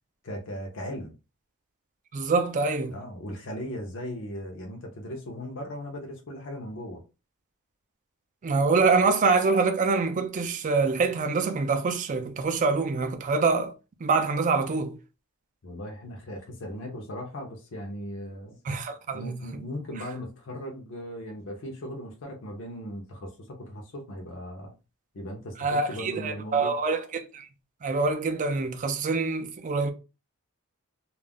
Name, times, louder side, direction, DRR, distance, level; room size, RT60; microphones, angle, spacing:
voice 1, 0.2-1.1 2.9-7.0 15.6-18.6 19.1-24.7 25.1-26.8, equal, 60° left, 0.6 m, -38 dB
voice 2, 2.1-2.9 8.4-13.7 14.0-14.9 18.7-19.4 25.6-27.5 27.8-29.9, right 4 dB, 35° right, 0.4 m, -25 dB
2.3 x 2.0 x 3.5 m
head